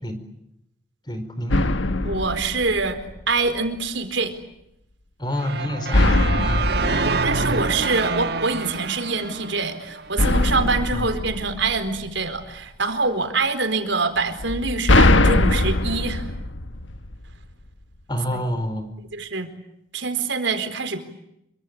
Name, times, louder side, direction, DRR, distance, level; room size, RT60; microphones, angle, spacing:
voice 1, 1.0-1.7 5.2-7.2 7.5-7.6 10.9-11.1 18.1-18.9, left 1 dB, 20° left, 9 dB, 4.8 m, -28 dB
sound 1, 1.5-3.4 5.9-8.3 10.2-12.4 14.4-17.5, left 2 dB, 80° left, 1.5 m, -22 dB
voice 2, 2.0-3.0 3.3-4.3 7.0-16.3 18.3-18.4 19.1-19.5 19.9-21.0, right 3 dB, 70° right, 9 dB, 4.4 m, -25 dB
sound 2, 5.4-10.4, right 3 dB, 55° right, 1.3 m, -27 dB
27.5 x 24.5 x 8.8 m, 0.81 s
head